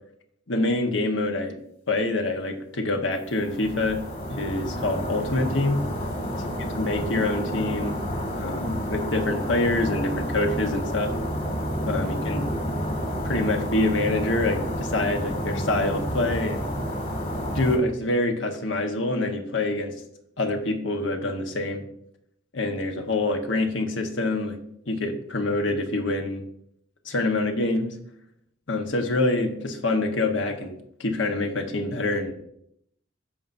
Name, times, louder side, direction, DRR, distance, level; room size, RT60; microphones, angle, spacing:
voice 1, 0.5-1.6 1.9-4.0 4.3-5.8 6.7-8.0 8.3-11.1 11.9-12.5 13.2-16.7 17.5-19.9 20.4-21.9 22.5-24.6 24.9-26.4 27.0-27.9 28.7-32.3, left 2 dB, 75° left, 4 dB, 1.2 m, -26 dB
sound 1, 3.2-17.8, equal, 45° left, 2.5 m, -30 dB
15.0 x 5.6 x 2.6 m, 0.72 s
head